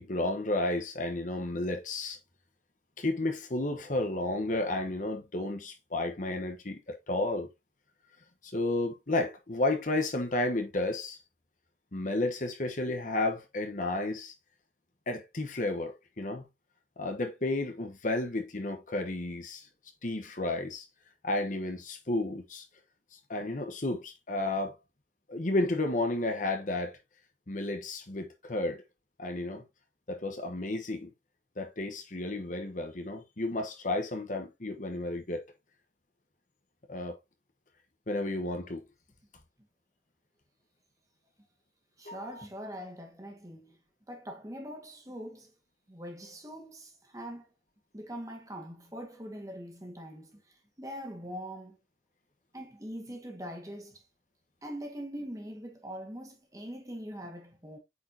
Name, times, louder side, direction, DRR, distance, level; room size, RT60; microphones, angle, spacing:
voice 1, 0.0-2.2 3.0-7.5 8.4-11.2 11.9-14.3 15.1-16.5 17.0-19.7 20.0-20.8 21.2-22.7 23.1-24.7 25.3-27.0 27.5-28.8 29.2-29.6 30.1-31.1 31.6-35.4 36.9-37.2 38.1-38.8 42.0-42.4, left 2 dB, 45° left, 1.1 m, -32 dB
voice 2, 42.0-43.8 44.1-45.5 45.9-47.5 47.9-51.8 52.5-54.0 54.6-57.8, equal, 20° right, 1.7 m, -42 dB
8.3 x 4.7 x 2.8 m
head